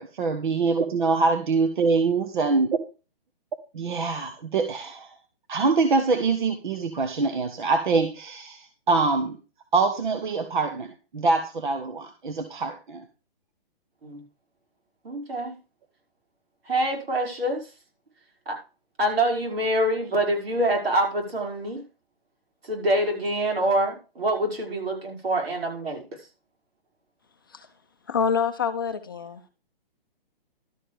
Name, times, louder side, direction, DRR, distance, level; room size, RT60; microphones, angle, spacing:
voice 1, 0.0-2.8 3.7-5.1 5.5-9.4 9.7-13.0, right 4 dB, 55° right, 6 dB, 1.5 m, -24 dB
voice 2, 15.0-15.5 16.7-17.6 18.5-18.6 19.0-21.8 22.7-26.0, right 1 dB, 80° right, 1 dB, 5.5 m, -25 dB
voice 3, 28.1-29.4, left 6 dB, 20° left, 5 dB, 0.6 m, -26 dB
12.5 x 6.9 x 5.0 m, 0.32 s
hypercardioid pair, 175°, 30 cm